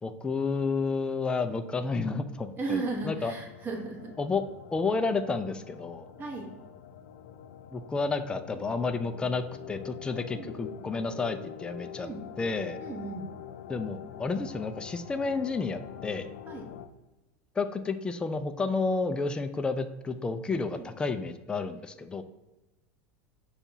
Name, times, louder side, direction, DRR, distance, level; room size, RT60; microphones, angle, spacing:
voice 1, 0.0-3.3 4.2-4.4 4.7-6.1 7.7-12.1 12.4-12.8 13.7-16.3 17.6-22.2, left 4 dB, 15° left, 9 dB, 0.3 m, -31 dB
voice 2, 2.6-4.1 6.2-6.5 10.3-10.5 12.0-12.2 12.8-13.3 16.5-16.7 20.7-20.8, right 3 dB, 30° right, 1 dB, 1.1 m, -35 dB
sound 1, 2.9-16.9, left 10 dB, 85° left, 0.4 m, -45 dB
5.4 x 2.3 x 4.1 m, 1.1 s
supercardioid pair, 125°, 7 cm